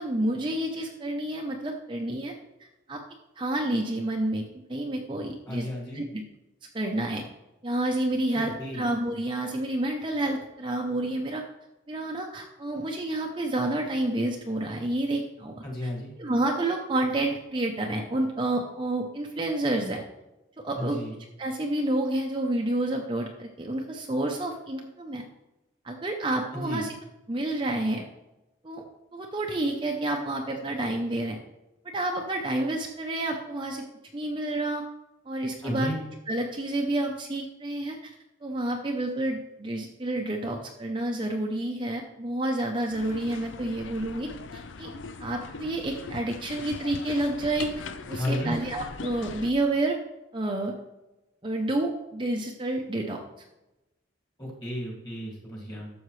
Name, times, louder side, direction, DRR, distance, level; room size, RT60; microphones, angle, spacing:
voice 1, 0.0-2.3 2.6-3.0 3.4-5.7 5.9-6.2 6.7-7.2 7.6-11.4 11.9-15.5 16.2-20.0 20.6-21.0 21.4-25.2 25.8-26.9 27.3-28.0 28.6-28.8 29.1-31.4 31.8-33.8 34.1-34.9 35.3-35.9 36.3-44.9 45.2-50.0 50.3-50.7 51.4-53.2, right 1 dB, 25° right, 1 dB, 0.7 m, -29 dB
voice 2, 5.5-6.0 8.3-8.8 15.6-16.1 20.8-21.1 26.5-26.8 35.6-36.0 48.0-48.6 54.4-55.9, left 1 dB, 20° left, -3 dB, 2.2 m, -33 dB
sound 1, 42.9-49.5, left 4 dB, 70° left, 0.5 m, -40 dB
12.0 x 7.1 x 3.2 m, 0.99 s
head